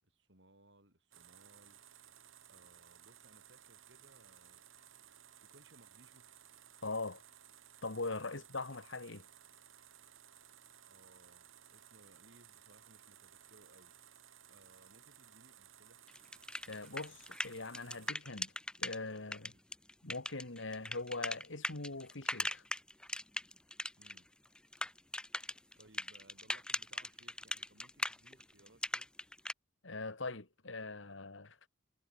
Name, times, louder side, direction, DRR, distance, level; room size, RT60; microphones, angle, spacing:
voice 1, 0.0-1.8 2.5-4.6 5.4-6.2 8.4-8.5 10.8-13.9 14.5-16.0 19.4-19.6 24.0-24.3 25.8-29.1, right 1 dB, 65° right, 6.5 m, -65 dB
sound 1, 1.1-18.1, right 10 dB, 90° right, 4.0 m, -59 dB
voice 2, 6.8-7.2 7.8-9.2 16.7-18.5 18.8-19.5 20.0-22.6 29.8-31.6, left 3 dB, 70° left, 2.1 m, -42 dB
sound 2, 16.1-19.0 19.3-24.2 24.4-29.5, left 1 dB, 5° left, 0.4 m, -39 dB
head